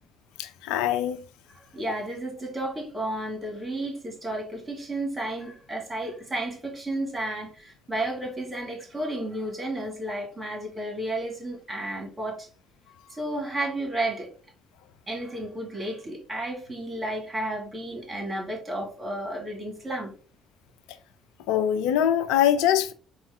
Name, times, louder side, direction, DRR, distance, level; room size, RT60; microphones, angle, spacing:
voice 1, 0.4-1.2 21.5-22.9, left 10 dB, 75° left, 0.3 m, -23 dB
voice 2, 1.7-12.5 13.2-14.3 15.1-20.1, right 1 dB, 25° right, 2.0 m, -32 dB
4.2 x 2.1 x 3.5 m
hypercardioid pair, 50°, 0 cm